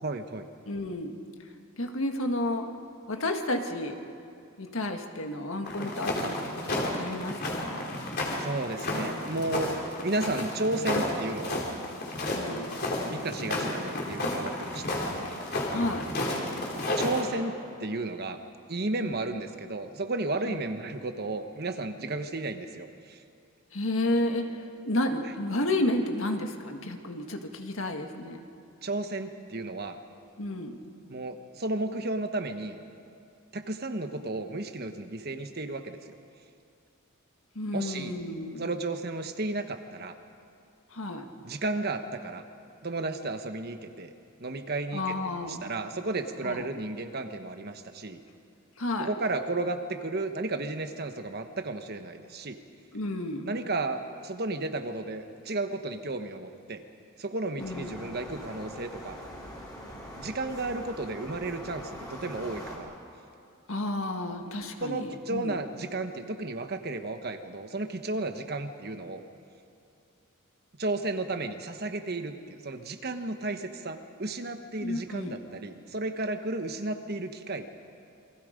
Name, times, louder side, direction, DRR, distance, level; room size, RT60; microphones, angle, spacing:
voice 1, 0.0-0.5 6.2-6.3 8.4-9.7 10.0-11.7 13.0-15.0 15.3-15.4 16.9-18.4 18.7-23.2 28.8-30.0 31.1-32.8 33.5-36.0 37.7-38.1 38.5-40.2 41.4-42.4 42.8-44.1 44.4-45.2 45.5-48.2 49.0-52.6 53.5-56.8 57.2-59.2 60.2-62.9 64.8-69.2 70.8-77.7, right 2 dB, 45° right, 7 dB, 1.2 m, -33 dB
voice 2, 0.7-1.2 1.8-2.7 3.1-4.0 4.6-6.4 6.7-7.8 12.3-12.8 15.7-16.1 19.0-19.2 20.4-20.6 23.7-24.5 24.8-28.5 30.4-30.8 37.5-38.7 40.9-41.2 44.9-45.7 46.4-46.6 48.8-49.1 52.9-53.6 57.6-58.0 63.7-65.6 74.8-75.4, left 1 dB, 65° left, 4 dB, 1.8 m, -31 dB
sound 1, 5.7-17.2, left 1 dB, 45° left, 3.8 m, -32 dB
sound 2, 57.6-62.8, equal, 15° left, 4.0 m, -43 dB
28.5 x 23.0 x 5.2 m, 2.4 s
head